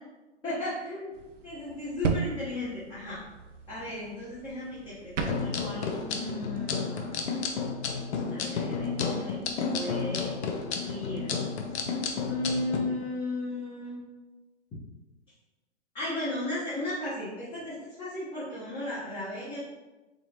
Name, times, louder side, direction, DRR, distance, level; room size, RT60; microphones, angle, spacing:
voice 1, 0.4-1.1 1.4-3.2 3.7-7.2 8.3-9.4 9.7-11.3 12.2-14.0 15.9-19.6, left 2 dB, 15° left, -10 dB, 0.9 m, -35 dB
sound 1, 1.1-6.0, right 5 dB, 85° right, 0.6 m, -36 dB
sound 2, 5.2-12.8, left 5 dB, 65° left, 0.7 m, -32 dB
3.7 x 3.0 x 2.8 m, 1.1 s
hypercardioid pair, 130°, 36 cm